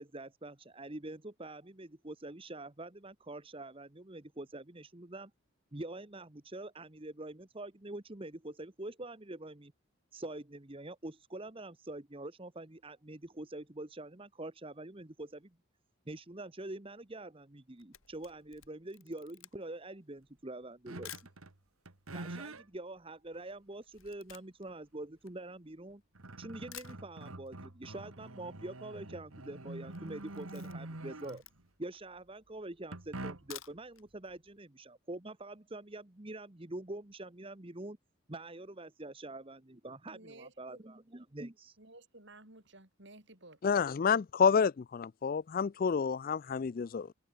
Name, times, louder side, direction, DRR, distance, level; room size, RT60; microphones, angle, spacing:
voice 1, 0.0-5.3 5.7-9.7 10.1-15.5 16.1-21.2 22.1-26.0 26.4-31.4 31.8-38.0 38.3-41.8, right 2 dB, 25° right, 1.2 m, -45 dB
Camera, 17.5-21.4 22.1-22.2 22.3-26.0 26.4-26.5 26.7-27.6 27.8-27.9 28.2-28.3 28.5-28.9 29.3-29.5 29.9-31.9 32.4-32.5 33.3-34.1 34.4-34.5 34.9-35.0, left 12 dB, 75° left, 5.7 m, -53 dB
sound 1, 20.9-21.6 21.9-22.6 23.3-23.4 25.5-25.6 25.9-31.7 32.9-33.7, right 2 dB, 85° right, 2.4 m, -46 dB
voice 2, 40.1-40.8 41.8-43.6, right 2 dB, 55° right, 6.4 m, -55 dB
voice 3, 43.6-47.1, left 6 dB, 40° left, 0.3 m, -29 dB
open air
head